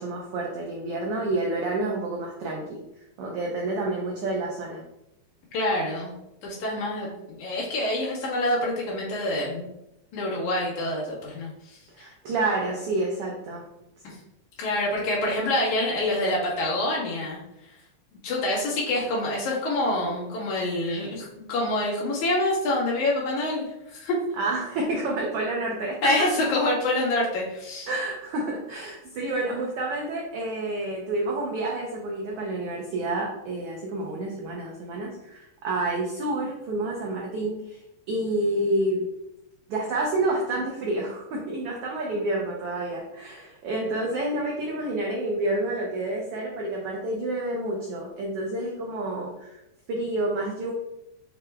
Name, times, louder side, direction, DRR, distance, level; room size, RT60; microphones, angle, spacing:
voice 1, 0.0-2.8 3.2-4.8 11.9-13.6 24.4-26.1 27.9-37.8 38.1-39.1 39.7-49.6 49.9-50.7, right 2 dB, 90° right, -2 dB, 1.2 m, -29 dB
voice 2, 5.5-6.1 6.4-9.7 10.1-11.8 14.0-14.2 14.6-17.4 18.2-23.6 23.9-24.2 26.0-27.9, left 1 dB, 80° left, -5 dB, 2.8 m, -26 dB
6.5 x 2.2 x 3.4 m, 0.88 s
omnidirectional pair, 3.4 m